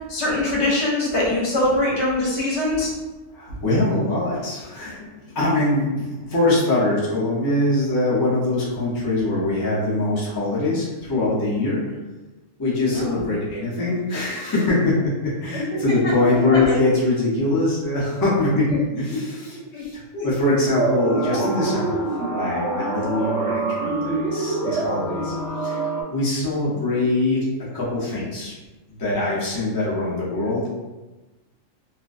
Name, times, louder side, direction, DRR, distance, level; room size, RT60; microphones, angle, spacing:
voice 1, 0.1-2.9 3.5-3.6 12.9-13.3 15.5-16.1 16.5-16.8 19.7-19.8 20.1-20.2 26.7-26.8, left 1 dB, 65° left, -5 dB, 0.9 m, -23 dB
voice 2, 3.3-11.8 12.6-22.0 22.3-25.3 25.6-27.4 27.7-28.5 28.9-30.7, left 2 dB, 35° left, -7 dB, 0.3 m, -23 dB
sound 1, 20.7-26.0, right 3 dB, 70° right, 0.9 m, -25 dB
2.4 x 2.2 x 2.4 m, 1.1 s
omnidirectional pair, 1.4 m